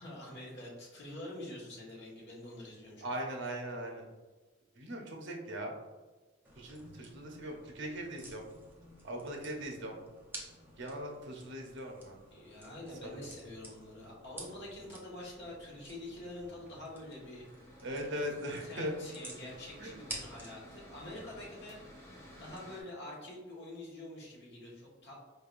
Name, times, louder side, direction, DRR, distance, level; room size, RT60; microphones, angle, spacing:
voice 1, 0.0-3.1 12.3-17.5 18.7-21.8 22.4-25.2, left 1 dB, 60° left, -4 dB, 1.4 m, -46 dB
voice 2, 3.0-4.1 4.8-5.7 6.6-8.4 9.0-10.0 10.8-12.2 13.1-13.3 17.8-18.9 19.8-19.9, equal, 60° right, 1 dB, 0.8 m, -40 dB
sound 1, 6.4-22.6, right 1 dB, 10° right, 0.7 m, -52 dB
Mechanical fan, 15.8-22.8, equal, 15° left, 1.0 m, -56 dB
4.6 x 3.3 x 2.5 m, 1.2 s
head